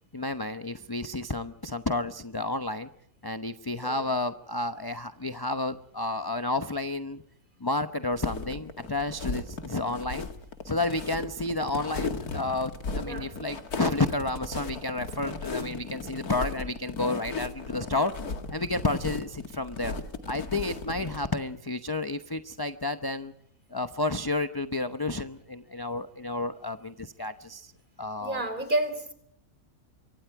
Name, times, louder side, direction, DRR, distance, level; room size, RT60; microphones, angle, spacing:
voice 1, 0.1-2.9 3.2-7.2 7.6-10.3 10.6-18.1 18.5-20.0 20.3-23.3 23.7-27.7 28.0-28.4, left 2 dB, 20° left, 10 dB, 0.7 m, -31 dB
sound 1, 8.1-21.3, left 4 dB, 75° left, 2.6 m, -36 dB
voice 2, 28.2-29.1, right 1 dB, 30° right, 10 dB, 4.0 m, -29 dB
27.5 x 24.5 x 4.8 m, 0.71 s
omnidirectional pair, 1.6 m